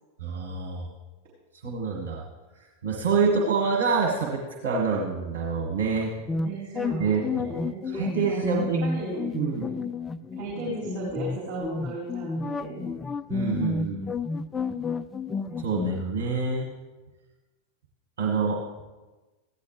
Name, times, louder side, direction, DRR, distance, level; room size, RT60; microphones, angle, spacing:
voice 1, 0.2-0.9 1.6-2.2 2.8-6.1 7.0-7.5 7.8-8.8 9.3-9.7 13.3-14.0 15.6-16.7 18.2-18.6, right 5 dB, 60° right, -2 dB, 1.7 m, -26 dB
sound 1, 6.3-16.0, left 4 dB, 15° left, 0.3 m, -31 dB
voice 2, 6.3-8.4 8.8-9.8 10.3-12.9 15.4-15.7, right 2 dB, 40° right, -6 dB, 3.8 m, -36 dB
15.0 x 10.5 x 3.3 m, 1.2 s
figure-of-eight pair, 90°, 0 cm